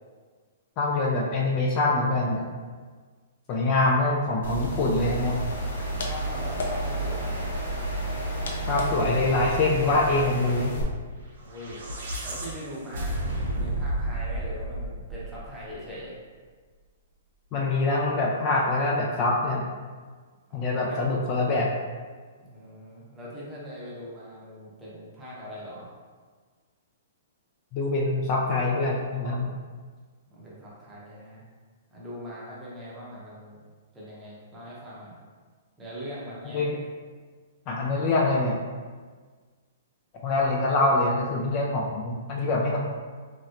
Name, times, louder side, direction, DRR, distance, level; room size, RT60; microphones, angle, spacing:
voice 1, 0.8-2.5 3.5-5.4 8.7-10.7 17.5-19.7 20.5-21.7 27.7-29.5 36.5-36.8 37.7-38.6 40.2-42.8, left 2 dB, 30° left, -2 dB, 0.3 m, -24 dB
sound 1, 4.4-10.8, right 1 dB, 80° left, 0.6 m, -31 dB
sound 2, 4.9-10.7, equal, 90° right, 1.1 m, -39 dB
voice 2, 5.9-7.5 11.4-11.9 12.2-16.1 20.5-21.1 22.4-25.9 30.3-31.5 31.9-33.6 33.9-35.2 35.8-36.7, equal, 10° right, -7 dB, 0.7 m, -41 dB
sound 3, 11.4-15.8, right 1 dB, 70° right, 0.8 m, -32 dB
3.1 x 2.8 x 2.4 m, 1.5 s
hypercardioid pair, 165°, 0 cm